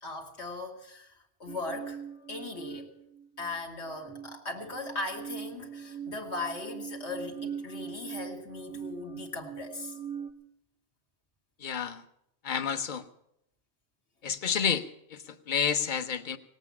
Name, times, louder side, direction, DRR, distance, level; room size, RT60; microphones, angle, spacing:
voice 1, 0.0-2.9 3.4-10.0, left 3 dB, 75° left, 2.1 m, -38 dB
sound 1, 1.5-3.6 3.9-10.3, right 8 dB, 5° right, 0.7 m, -42 dB
voice 2, 11.6-12.0 12.4-13.0 14.2-16.4, left 7 dB, 50° left, 0.9 m, -30 dB
18.0 x 8.3 x 8.4 m
omnidirectional pair, 1.1 m